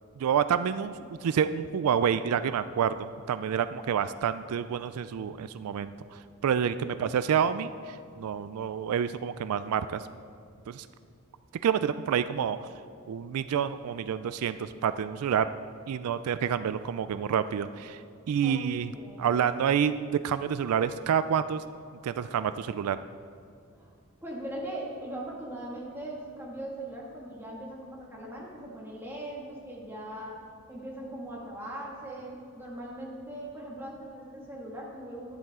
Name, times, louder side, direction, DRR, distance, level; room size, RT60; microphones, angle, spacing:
voice 1, 0.2-0.9 1.2-10.0 10.7-10.9 11.6-12.6 13.1-15.5 15.9-18.0 18.3-18.9 19.2-19.9 20.2-21.6 22.0-23.0, right 8 dB, 85° right, 12 dB, 0.3 m, -28 dB
voice 2, 18.4-19.5 23.8-23.9 24.2-30.4 30.7-35.3, right 1 dB, 10° right, -4 dB, 2.0 m, -40 dB
11.5 x 10.5 x 3.7 m, 2.3 s
head